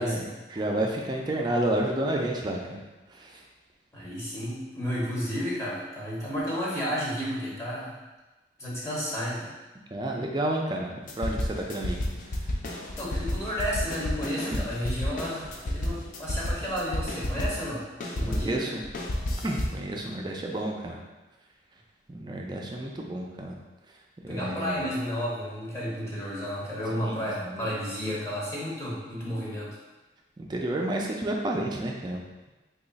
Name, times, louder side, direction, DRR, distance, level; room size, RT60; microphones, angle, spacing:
voice 1, 0.0-2.8 3.1-3.4 9.9-12.0 12.3-12.5 14.5-14.6 18.2-18.8 19.4-21.0 22.1-23.6 24.2-24.8 26.9-27.7 30.4-32.5, right 1 dB, 25° right, 0 dB, 0.4 m, -31 dB
voice 2, 3.9-8.0 8.6-9.5 13.0-17.8 18.1-18.8 24.3-29.8, equal, 15° left, -6 dB, 0.7 m, -32 dB
sound 1, 11.1-17.7 18.0-19.9, left 1 dB, 45° left, 0.4 m, -31 dB
2.9 x 2.3 x 3.9 m, 1.1 s
head